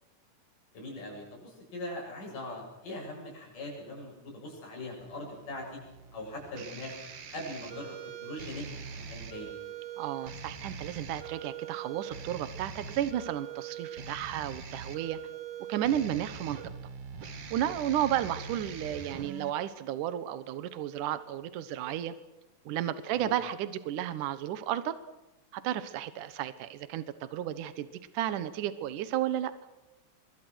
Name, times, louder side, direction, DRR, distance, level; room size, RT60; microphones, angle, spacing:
voice 1, 0.7-5.8 6.1-7.0 7.3-9.6 23.2-23.3, left 1 dB, 80° left, -1 dB, 9.6 m, -41 dB
sound 1, 5.0-19.5, right 7 dB, 50° right, 2.7 m, -43 dB
voice 2, 10.0-15.2 15.7-16.6 17.5-22.2 22.7-25.0 25.5-27.9 28.1-29.5, right 11 dB, 75° right, 13 dB, 2.7 m, -33 dB
25.0 x 24.0 x 6.3 m, 1.0 s
omnidirectional pair, 3.7 m